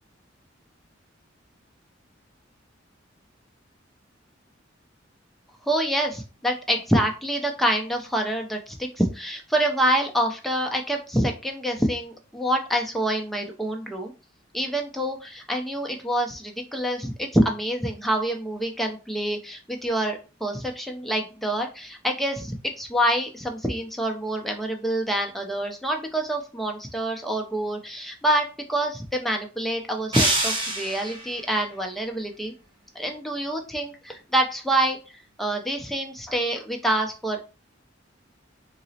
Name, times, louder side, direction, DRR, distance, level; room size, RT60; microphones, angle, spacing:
voice 1, 5.6-14.1 14.5-32.5 32.9-37.4, right 1 dB, ahead, 2 dB, 0.4 m, -26 dB
sound 1, 30.1-31.4, right 2 dB, 25° right, 0.8 m, -25 dB
3.8 x 2.0 x 2.7 m, 0.33 s
head